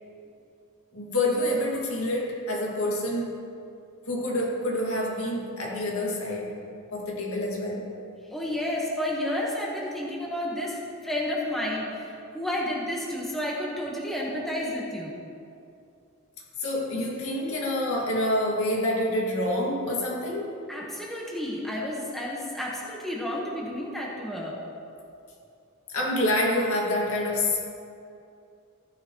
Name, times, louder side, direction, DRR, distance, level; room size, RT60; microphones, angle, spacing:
voice 1, 0.9-3.4 4.1-6.6 6.9-8.0 16.6-20.5 25.9-27.6, left 1 dB, 75° left, -2 dB, 2.2 m, -27 dB
voice 2, 8.3-15.2 20.7-24.6, left 1 dB, ahead, -4 dB, 1.3 m, -31 dB
15.0 x 10.0 x 3.1 m, 2.6 s
head